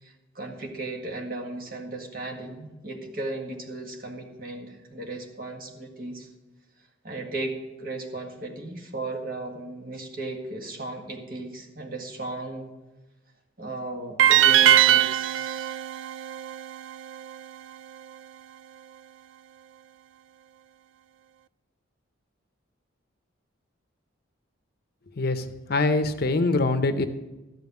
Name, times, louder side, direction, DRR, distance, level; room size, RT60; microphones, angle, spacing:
voice 1, 0.0-6.3 7.0-12.7 13.6-15.8, right 2 dB, 45° right, 2 dB, 1.9 m, -36 dB
sound 1, 14.2-17.3, right 11 dB, 75° right, 0.3 m, -21 dB
voice 2, 25.2-27.1, left 3 dB, 50° left, 9 dB, 0.7 m, -24 dB
13.5 x 5.5 x 9.4 m, 1.1 s
head